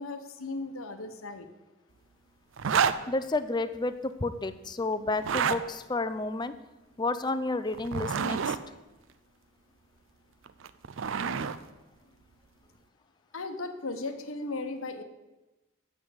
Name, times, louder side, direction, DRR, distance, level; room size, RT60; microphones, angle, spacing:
voice 1, 0.0-1.5 13.3-15.0, left 3 dB, 75° left, 7 dB, 1.0 m, -36 dB
sound 1, 2.6-3.0 5.1-5.6 7.7-8.6 10.5-11.6, right 6 dB, 65° right, 0.5 m, -28 dB
voice 2, 3.1-6.5 7.0-8.6, left 2 dB, 20° left, 12 dB, 0.4 m, -31 dB
7.4 x 7.0 x 7.9 m, 1.1 s
head